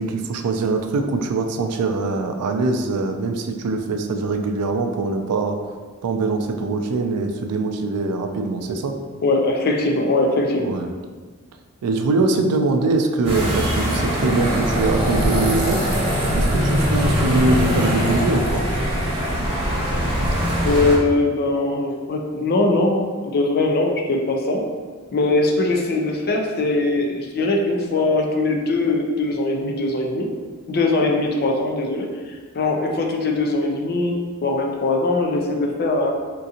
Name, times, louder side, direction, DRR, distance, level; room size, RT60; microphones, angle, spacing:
voice 1, 0.0-5.6 6.0-8.9 10.6-10.9 11.8-15.8 16.3-18.6, right 3 dB, 90° right, 5 dB, 0.4 m, -23 dB
voice 2, 9.2-10.8 20.6-24.6 25.1-30.3 30.7-36.1, left 2 dB, 45° left, 2 dB, 0.4 m, -21 dB
sound 1, 13.2-20.9, equal, 25° right, 1.1 m, -21 dB
3.7 x 2.5 x 2.7 m, 1.5 s
head